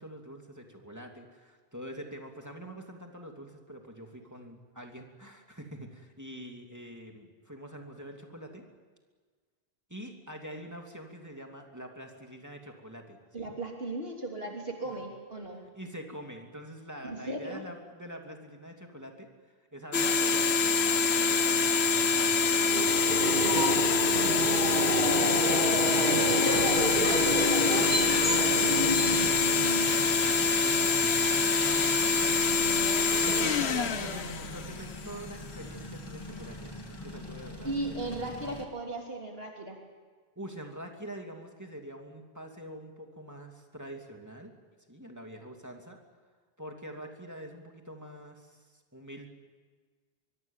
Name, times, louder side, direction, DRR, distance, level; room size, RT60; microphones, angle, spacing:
voice 1, 0.0-8.6 9.9-13.5 14.8-15.0 15.7-19.3 19.7-25.9 27.7-31.4 32.1-32.3 32.8-32.9 33.2-38.0 40.4-44.5 44.9-46.0 46.6-49.3, equal, 15° right, 2 dB, 2.9 m, -45 dB
voice 2, 13.3-15.6 17.0-17.6 25.9-27.8 32.4-34.2 37.6-39.8, right 2 dB, 70° right, 0 dB, 3.4 m, -37 dB
sound 1, 19.9-35.1, left 4 dB, 90° left, 1.4 m, -25 dB
Subway metro underground, 22.5-30.2, right 1 dB, 45° right, 2.2 m, -30 dB
sound 2, 26.5-38.6, left 1 dB, 25° left, 2.5 m, -43 dB
24.0 x 23.5 x 7.4 m, 1.5 s
omnidirectional pair, 1.1 m